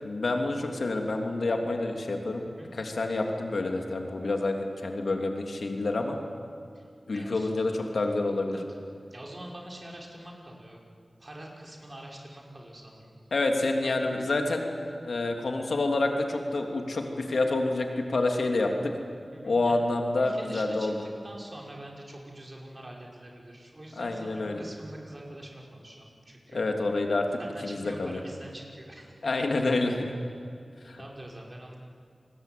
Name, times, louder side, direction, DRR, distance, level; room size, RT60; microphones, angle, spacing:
voice 1, 0.0-6.2 7.1-8.6 13.3-14.7 15.0-18.9 19.4-21.0 24.0-24.6 26.5-28.2 29.2-30.1 30.8-31.0, left 2 dB, 85° left, 3 dB, 3.2 m, -28 dB
voice 2, 2.4-2.7 5.8-6.0 6.7-6.8 7.1-7.5 8.5-8.6 9.1-10.8 11.2-13.1 13.8-14.0 19.3-19.7 20.2-26.7 27.4-29.1 31.0-31.8, right 1 dB, 40° right, -1 dB, 6.0 m, -45 dB
28.5 x 21.0 x 9.5 m, 2.3 s
cardioid pair, 50°, 0 cm